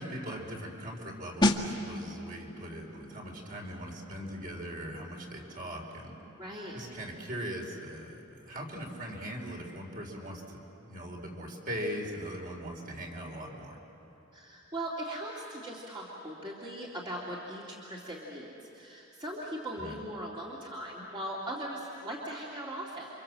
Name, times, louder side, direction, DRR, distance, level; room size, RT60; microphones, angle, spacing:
voice 1, 0.0-6.1 6.7-13.8 19.8-20.0, equal, 45° right, 0 dB, 4.5 m, -40 dB
sound 1, 1.4-11.9 12.2-12.4, left 1 dB, 20° left, 1.8 m, -37 dB
voice 2, 6.4-6.8 14.3-23.1, right 1 dB, 25° right, -5 dB, 2.6 m, -39 dB
29.5 x 26.0 x 7.7 m, 3.0 s
head